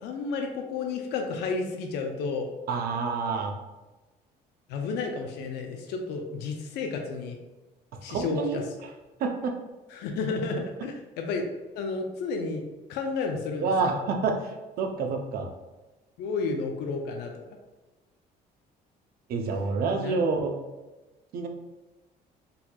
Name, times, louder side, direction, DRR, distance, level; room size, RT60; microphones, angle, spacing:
voice 1, 0.0-2.5 4.7-7.4 8.0-8.6 9.9-11.4 11.8-12.6 12.9-13.7 16.2-17.4 20.0-20.2, left 4 dB, 85° left, 3 dB, 0.5 m, -31 dB
voice 2, 2.7-3.6 8.1-8.6 9.2-9.5 13.6-15.5 19.3-20.5 21.3-21.5, right 4 dB, 65° right, 3 dB, 0.6 m, -28 dB
4.0 x 2.8 x 2.3 m, 1.1 s
cardioid pair, 110°, 17 cm